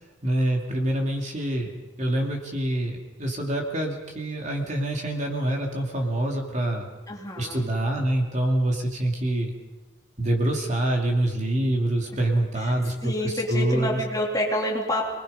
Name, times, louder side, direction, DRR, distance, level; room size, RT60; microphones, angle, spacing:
voice 1, 0.2-6.9 7.4-9.5 10.2-14.0, right 1 dB, 35° right, 1 dB, 2.5 m, -26 dB
voice 2, 7.1-7.6 13.0-15.1, left 1 dB, 15° left, -1 dB, 2.9 m, -28 dB
25.5 x 20.0 x 5.5 m, 1.2 s
head